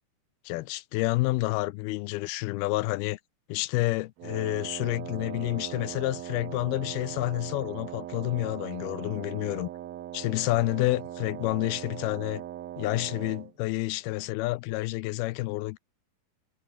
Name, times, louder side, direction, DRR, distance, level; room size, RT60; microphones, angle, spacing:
voice 1, 0.5-3.2 3.5-9.7 10.1-12.4 12.8-15.8, left 19 dB, 85° left, 2.6 m, -29 dB
Wind instrument woodwind instrument, 4.2-13.5, right 12 dB, 75° right, 3.2 m, -40 dB
omnidirectional pair, 4.5 m